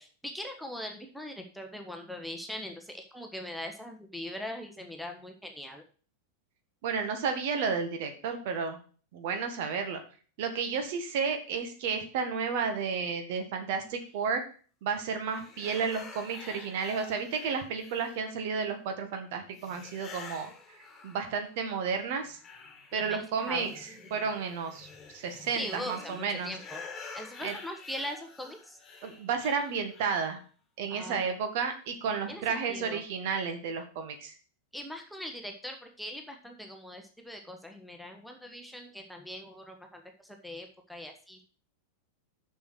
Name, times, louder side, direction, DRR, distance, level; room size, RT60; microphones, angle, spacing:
voice 1, 0.0-5.8 22.9-23.7 25.6-26.8 27.1-28.8 30.9-31.2 32.3-33.0 34.7-41.4, left 1 dB, ahead, 3 dB, 1.3 m, -41 dB
voice 2, 6.8-8.8 9.1-10.0 10.4-14.4 14.8-22.4 22.9-26.5 27.4-27.5 29.0-30.4 30.8-34.3, right 5 dB, 50° right, 6 dB, 1.8 m, -32 dB
sound 1, 15.3-18.5 19.6-21.6 21.9-30.4, left 4 dB, 20° left, 2.2 m, -48 dB
7.0 x 6.4 x 6.4 m, 0.40 s
figure-of-eight pair, 90°, 0 cm